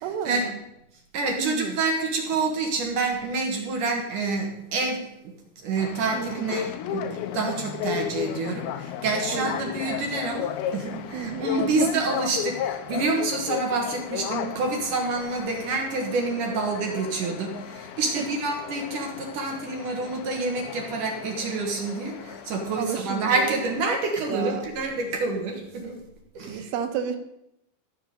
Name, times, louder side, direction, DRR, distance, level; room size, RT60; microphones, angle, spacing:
voice 1, 0.0-0.6 1.4-1.8 6.1-6.6 9.3-9.6 11.1-12.0 18.2-18.3 22.7-23.6 24.3-24.7 26.5-27.2, right 8 dB, 90° right, 6 dB, 3.6 m, -31 dB
voice 2, 1.1-5.3 5.6-26.0 26.4-26.7, right 3 dB, 65° right, 2 dB, 2.1 m, -28 dB
sound 1, 5.8-23.9, left 10 dB, 80° left, 2.8 m, -34 dB
14.0 x 8.5 x 5.3 m, 0.83 s
omnidirectional pair, 5.6 m